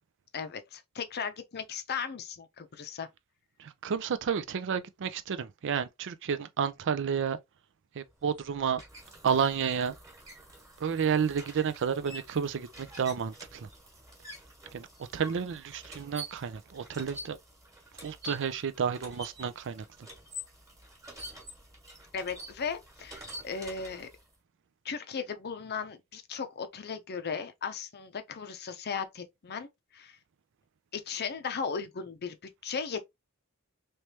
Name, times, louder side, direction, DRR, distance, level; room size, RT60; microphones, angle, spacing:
voice 1, 0.3-3.1 22.1-24.1 24.8-30.2 30.9-32.4 32.6-33.0, left 6 dB, 45° left, 0.6 m, -36 dB
voice 2, 3.6-7.4 7.9-8.8 9.2-9.9 10.8-13.7 14.7-14.9 15.1-17.4 18.0-19.9, right 7 dB, 60° right, 0.4 m, -31 dB
sound 1, 8.1-24.3, equal, 15° right, 1.3 m, -48 dB
3.3 x 3.1 x 2.8 m
head